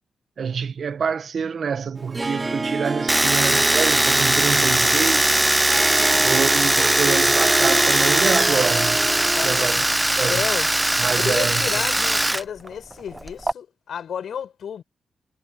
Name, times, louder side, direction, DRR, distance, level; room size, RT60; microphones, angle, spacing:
voice 1, 0.4-5.5 6.1-9.1 9.4-9.8 10.2-10.4 11.0-11.8, right 6 dB, 60° right, 1.4 m, -27 dB
Harp, 2.0-9.9, right 3 dB, 30° right, 2.3 m, -28 dB
Domestic sounds home sounds, 3.1-12.4 12.7-13.5, right 1 dB, 15° right, 0.8 m, -20 dB
voice 2, 6.0-6.3 9.4-9.9 10.3-10.7 11.2-14.8, left 8 dB, 70° left, 5.9 m, -32 dB
cardioid pair, 60°, 0 cm